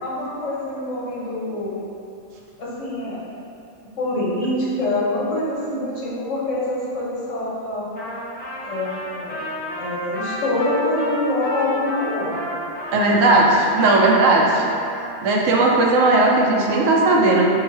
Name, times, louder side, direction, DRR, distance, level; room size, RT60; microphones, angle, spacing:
voice 1, 0.0-1.8 2.6-3.2 4.0-7.9 8.6-9.4 9.8-12.4 16.5-16.7, left 1 dB, 75° left, -6 dB, 1.3 m, -25 dB
Trumpet, 8.0-15.1, left 1 dB, 10° left, 0.8 m, -31 dB
voice 2, 12.9-14.6 15.2-17.5, right 2 dB, 80° right, -1 dB, 1.0 m, -16 dB
3.7 x 2.3 x 4.5 m, 2.6 s
omnidirectional pair, 1.3 m